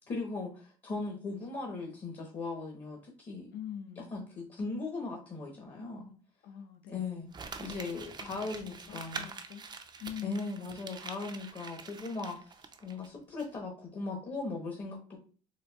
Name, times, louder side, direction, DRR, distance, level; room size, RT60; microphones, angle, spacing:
voice 1, 0.1-3.5 4.0-6.1 6.9-7.3 7.6-9.3 10.2-12.5 12.8-15.2, left 3 dB, 35° left, 0 dB, 0.8 m, -38 dB
voice 2, 3.5-4.1 6.4-7.0 8.2-8.6 8.9-9.6 10.0-10.7, left 8 dB, 65° left, 6 dB, 0.6 m, -43 dB
Crumpling crinkling, 7.3-13.1 13.4-13.5, right 5 dB, 25° right, 0.4 m, -45 dB
4.1 x 2.5 x 2.3 m, 0.40 s
cardioid pair, 110°, 17 cm